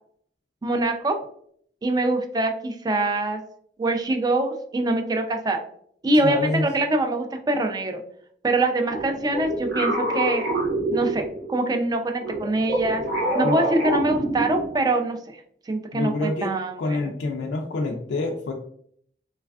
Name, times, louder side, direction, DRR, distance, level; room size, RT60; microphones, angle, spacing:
voice 1, 0.6-1.2 1.8-3.4 3.8-5.6 6.0-8.0 8.4-10.5 10.9-13.0 13.3-15.4 15.7-17.0, right 2 dB, 20° right, 5 dB, 0.3 m, -24 dB
voice 2, 6.2-6.7 13.4-13.6 15.9-16.5 16.8-18.5, left 2 dB, 85° left, 1 dB, 0.4 m, -26 dB
sound 1, 8.9-11.6 12.2-14.9, right 1 dB, 70° right, 0.9 m, -26 dB
3.2 x 2.3 x 2.2 m, 0.63 s
head